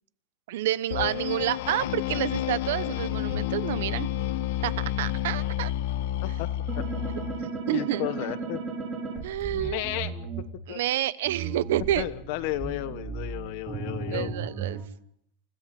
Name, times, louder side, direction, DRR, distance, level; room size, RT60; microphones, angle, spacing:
voice 1, 0.5-4.1 4.6-5.7 7.4-8.1 9.2-9.8 10.7-12.1 14.1-14.8, right 13 dB, 80° right, 17 dB, 1.0 m, -29 dB
sound 1, 0.9-7.4, left 12 dB, 75° left, 1.6 m, -30 dB
sound 2, 6.7-10.4 11.2-14.8, right 4 dB, 25° right, 5.7 m, -35 dB
voice 2, 7.4-8.6 9.5-10.1 10.7-10.8 12.0-14.3, left 15 dB, 55° left, 12 dB, 1.3 m, -33 dB
28.5 x 16.5 x 6.0 m, 0.70 s
supercardioid pair, 165°, 0 cm